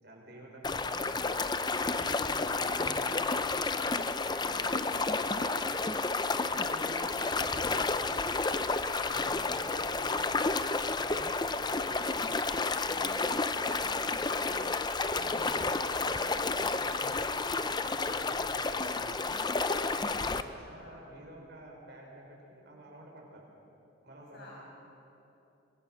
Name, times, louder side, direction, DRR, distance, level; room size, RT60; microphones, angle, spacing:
voice 1, 0.0-1.3 1.6-3.9 4.2-6.0 6.5-7.1 7.4-8.7 9.0-10.2 10.9-14.4 15.1-19.4 20.1-23.4 24.0-24.5, right 1 dB, 55° right, -1 dB, 5.4 m, -51 dB
sound 1, 0.6-20.4, left 3 dB, 20° left, 0.6 m, -31 dB
voice 2, 4.3-4.8 20.0-20.3 20.6-20.9 24.3-24.5, left 1 dB, 55° left, -5 dB, 6.3 m, -54 dB
26.0 x 22.0 x 6.4 m, 2.9 s
head